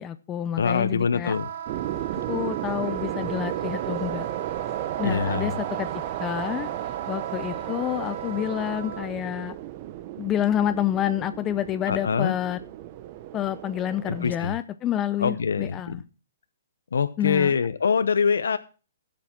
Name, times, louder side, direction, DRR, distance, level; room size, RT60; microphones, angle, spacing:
voice 1, 0.0-1.3 2.1-4.3 5.0-6.7 7.1-9.6 10.2-12.6 13.3-16.0 17.2-17.5, left 11 dB, 20° left, 12 dB, 0.6 m, -28 dB
voice 2, 0.6-1.5 5.0-5.6 11.9-12.3 14.1-14.6 15.2-16.0 16.9-18.6, left 6 dB, 85° left, 12 dB, 0.8 m, -24 dB
Wind instrument woodwind instrument, 1.2-9.1, right 9 dB, 55° right, 1.6 m, -37 dB
sound 1, 1.7-8.6, right 2 dB, 10° right, 1.8 m, -51 dB
sound 2, 1.7-14.4, right 13 dB, 40° right, 0.8 m, -34 dB
13.0 x 7.6 x 6.0 m, 0.35 s
hypercardioid pair, 145°, 0 cm